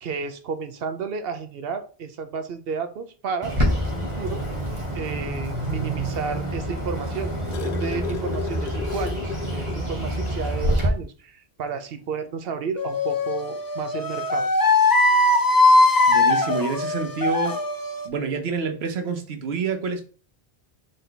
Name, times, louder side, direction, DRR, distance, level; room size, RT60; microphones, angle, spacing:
voice 1, 0.0-4.4 4.9-14.5, right 5 dB, 75° right, 0.9 m, -32 dB
Bird, 3.4-10.9, equal, 30° right, 1.1 m, -27 dB
sound 1, 6.9-9.9 10.3-10.4 10.7-11.0 12.1-12.2, left 7 dB, 65° left, 0.7 m, -34 dB
sound 2, 12.8-18.1, left 2 dB, 30° left, 0.4 m, -20 dB
voice 2, 16.1-17.6 18.0-20.0, right 5 dB, 90° right, 1.1 m, -27 dB
3.9 x 3.4 x 3.8 m
omnidirectional pair, 1.0 m